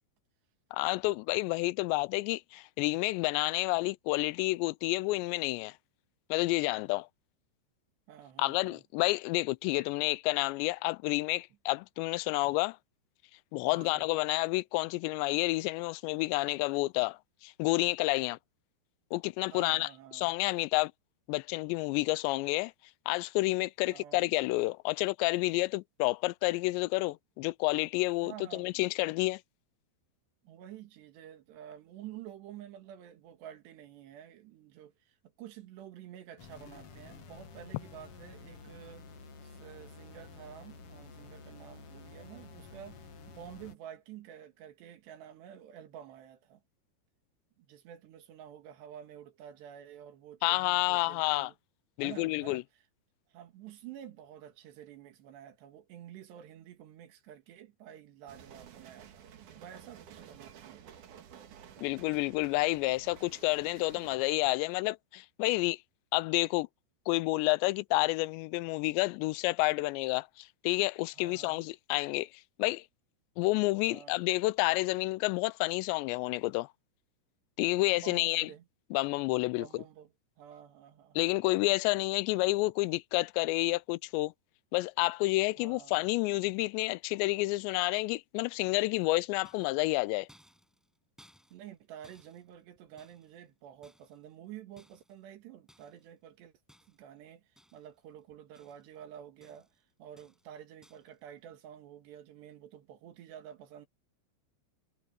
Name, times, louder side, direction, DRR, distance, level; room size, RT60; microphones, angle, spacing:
voice 1, 0.7-5.7 6.3-7.1 8.4-12.8 13.5-18.4 19.1-20.9 21.3-22.7 23.1-29.4 50.4-51.5 52.0-52.6 61.8-65.8 66.1-66.7 67.1-72.3 72.6-72.8 73.4-76.7 77.6-78.5 78.9-79.8 81.2-84.3 84.7-90.3, left 22 dB, 85° left, 2.8 m, -30 dB
voice 2, 8.1-8.8 13.7-14.1 19.5-20.3 23.9-24.3 28.2-28.9 30.4-39.1 39.4-43.0 43.3-46.6 47.6-51.6 52.0-52.6 53.3-60.9 71.1-71.7 73.9-74.2 77.9-78.7 79.5-80.1 80.4-81.3 85.6-86.1 91.5-96.6 96.9-103.9, right 10 dB, 75° right, 4.1 m, -50 dB
sound 1, 36.4-43.7, left 4 dB, 50° left, 1.9 m, -51 dB
sound 2, 58.3-64.2, right 8 dB, 55° right, 2.7 m, -52 dB
sound 3, 88.6-89.1 89.5-91.8 92.0-93.5 93.8-94.4 94.8-95.2 95.7-96.1 96.7-97.2 97.6-98.0 98.3-99.0 99.4-99.8 100.2-100.5 100.8-101.2, equal, ahead, 6.1 m, -64 dB
omnidirectional pair, 5.1 m